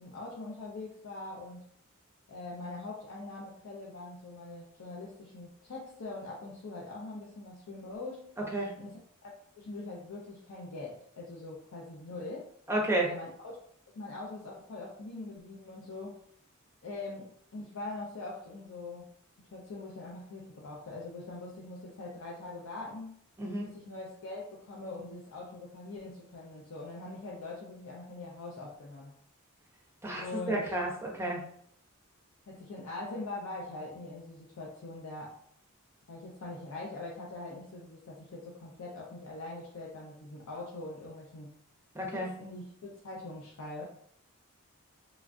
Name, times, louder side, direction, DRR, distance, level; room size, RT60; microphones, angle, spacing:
voice 1, 0.0-1.6 2.3-8.3 8.8-12.5 13.0-13.5 13.9-16.2 16.8-19.1 19.4-23.2 23.6-29.1 30.1-30.8 32.5-35.4 36.1-41.6 42.1-43.9, left 2 dB, 70° left, -3 dB, 0.5 m, -43 dB
voice 2, 12.7-13.1 23.4-23.7 30.0-31.4 41.9-42.3, right 1 dB, 10° right, -1 dB, 0.6 m, -31 dB
3.1 x 2.3 x 2.5 m, 0.65 s
head